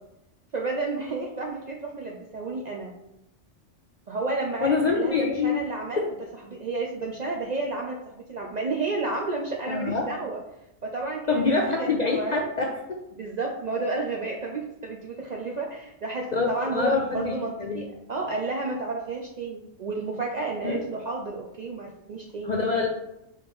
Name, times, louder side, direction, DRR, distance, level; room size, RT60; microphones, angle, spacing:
voice 1, 0.5-2.9 4.1-6.0 6.5-10.4 10.8-12.5 13.2-22.5, right 3 dB, 55° right, -1 dB, 0.4 m, -31 dB
voice 2, 4.6-5.6 6.0-6.1 9.7-10.0 11.3-12.7 16.3-17.3 17.6-17.9 20.6-20.8 22.4-22.9, left 4 dB, 55° left, 0 dB, 0.5 m, -25 dB
4.8 x 3.1 x 3.4 m, 0.85 s
omnidirectional pair, 1.2 m